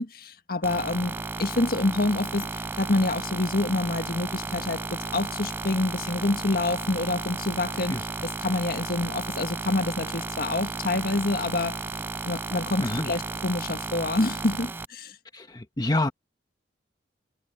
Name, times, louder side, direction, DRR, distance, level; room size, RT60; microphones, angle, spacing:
voice 1, 0.0-11.8 12.2-15.1, left 2 dB, 55° left, 1.7 m, -27 dB
sound 1, 0.6-14.8, right 3 dB, 10° right, 0.4 m, -34 dB
voice 2, 12.8-13.1 15.3-16.1, left 2 dB, 25° left, 1.3 m, -27 dB
head